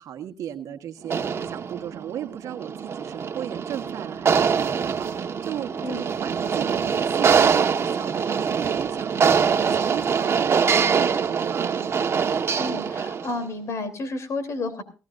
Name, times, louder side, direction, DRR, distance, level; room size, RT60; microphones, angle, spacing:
voice 1, 0.0-11.9, right 10 dB, 70° right, 1.5 m, -36 dB
sound 1, 1.0-13.4, right 6 dB, 45° right, 1.5 m, -24 dB
voice 2, 12.6-14.8, left 2 dB, 55° left, 3.4 m, -31 dB
18.5 x 16.5 x 2.6 m
supercardioid pair, 70°, 6 cm